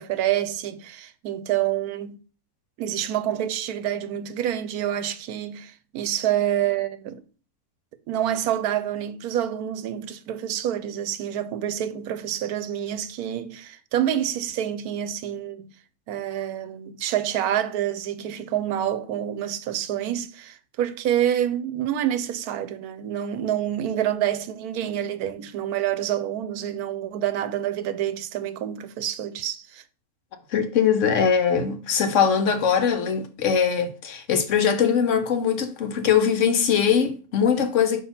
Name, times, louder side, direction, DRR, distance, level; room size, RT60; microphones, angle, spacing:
voice 1, 0.0-2.2 2.8-7.2 8.1-15.7 16.1-29.8, right 11 dB, 80° right, 1.1 m, -27 dB
voice 2, 30.5-38.0, left 7 dB, 60° left, 1.0 m, -21 dB
6.0 x 2.8 x 5.6 m
omnidirectional pair, 1.6 m